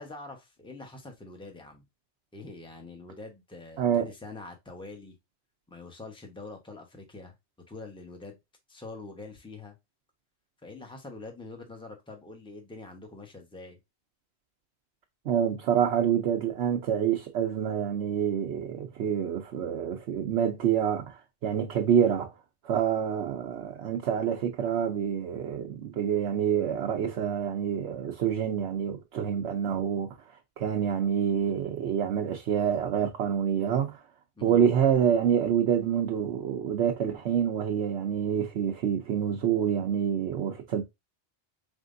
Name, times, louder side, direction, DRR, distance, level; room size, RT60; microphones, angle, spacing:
voice 1, 0.0-1.9 2.3-5.1 5.7-7.3 7.7-8.4 8.7-9.8 10.6-13.8 34.4-34.6, left 3 dB, 5° left, 0.8 m, -44 dB
voice 2, 3.8-4.1 15.2-22.3 22.6-30.1 30.6-34.0 34.4-40.8, right 8 dB, 75° right, 1.0 m, -27 dB
4.4 x 3.6 x 2.5 m
omnidirectional pair, 1.2 m